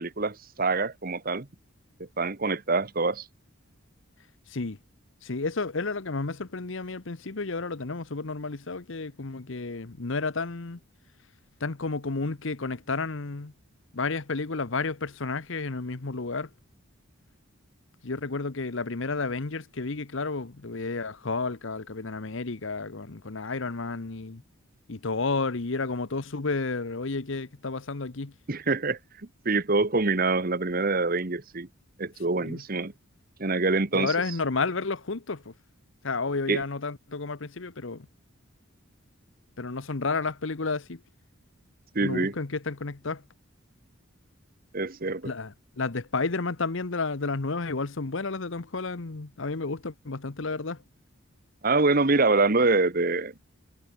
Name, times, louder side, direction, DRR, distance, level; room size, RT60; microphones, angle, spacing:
voice 1, 0.0-1.5 2.2-3.2 28.5-29.0 29.4-31.7 32.0-32.9 33.4-34.1 36.5-36.6 41.9-42.3 44.7-45.3 51.6-53.4, right 3 dB, 45° right, 1.2 m, -25 dB
voice 2, 5.2-10.8 11.6-13.5 13.9-16.5 18.0-24.4 24.9-28.3 32.4-32.6 33.9-35.5 36.0-38.1 39.6-41.0 42.0-43.2 45.2-50.8, left 3 dB, 60° left, 1.0 m, -31 dB
head